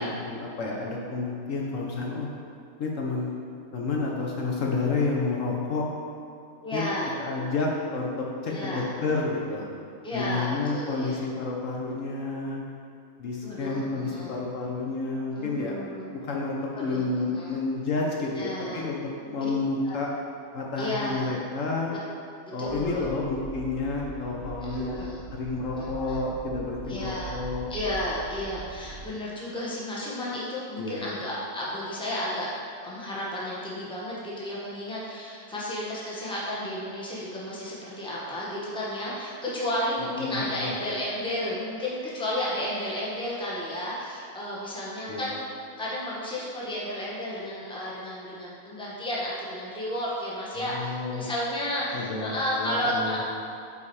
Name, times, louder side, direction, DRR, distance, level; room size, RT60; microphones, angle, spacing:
voice 1, 0.0-2.3 2.8-3.3 3.7-5.9 6.7-6.8 7.2-9.7 10.1-12.6 13.2-15.7 16.0-20.1 20.5-21.9 22.5-25.0 25.3-27.7 30.8-31.0 40.0-40.7 45.1-45.2 50.6-51.3 51.9-53.2, left 3 dB, 65° left, -2 dB, 1.1 m, -30 dB
voice 2, 6.6-7.1 8.5-8.9 10.0-11.2 13.4-14.3 15.3-16.1 16.7-17.5 18.2-18.8 19.4-19.5 19.8-20.0 20.8-21.3 22.4-23.1 24.7-25.2 25.8-26.2 26.9-27.4 27.7-32.5 32.8-45.4 45.8-53.2, left 1 dB, 5° left, -6 dB, 1.0 m, -32 dB
sound 1, 22.7-29.1, right 5 dB, 40° right, 0.8 m, -41 dB
5.7 x 4.7 x 4.6 m, 2.5 s
omnidirectional pair, 1.5 m